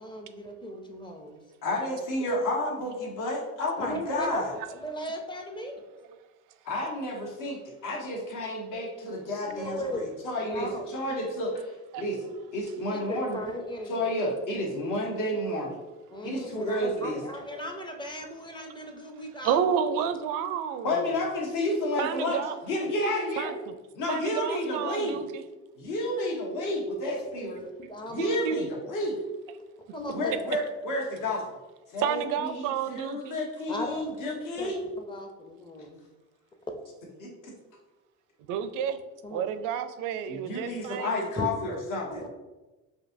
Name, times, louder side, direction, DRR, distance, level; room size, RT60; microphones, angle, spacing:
voice 1, 0.0-1.4 3.8-5.8 9.4-10.1 10.4-11.3 12.9-13.9 16.1-19.6 27.0-28.4 29.9-30.4 33.7-36.0 39.2-39.5 41.4-41.5 42.1-42.3, left 1 dB, 15° left, 3 dB, 0.5 m, -37 dB
voice 2, 1.6-4.5 6.6-12.2 12.5-13.4 13.9-15.8 16.2-17.2 20.8-23.5 23.9-25.2 25.8-27.6 28.1-29.2 30.1-31.4 31.9-34.8 37.2-37.5 40.3-42.1, left 1 dB, 65° left, -2 dB, 1.2 m, -31 dB
voice 3, 19.4-21.0 22.0-22.6 23.4-23.7 24.1-25.4 28.2-28.7 32.0-33.4 38.5-39.0 39.3-41.3, right 8 dB, 75° right, 10 dB, 0.5 m, -30 dB
5.1 x 2.7 x 2.6 m, 1.1 s
cardioid pair, 100°, 33 cm